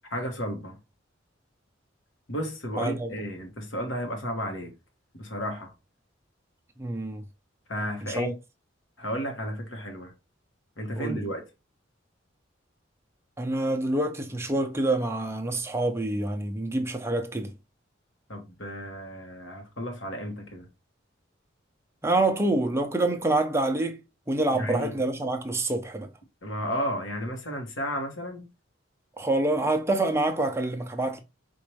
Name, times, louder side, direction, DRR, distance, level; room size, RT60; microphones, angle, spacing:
voice 1, 0.1-0.8 2.3-4.7 5.1-5.7 7.7-8.3 9.0-10.1 10.8-11.4 18.3-20.7 24.5-25.0 26.4-28.5, equal, 70° left, 1.2 m, -33 dB
voice 2, 2.8-3.1 6.8-7.2 8.0-8.3 11.0-11.2 13.4-17.5 22.0-24.0 24.3-26.1 29.2-31.2, right 2 dB, 15° right, 0.5 m, -26 dB
4.4 x 2.5 x 3.1 m
head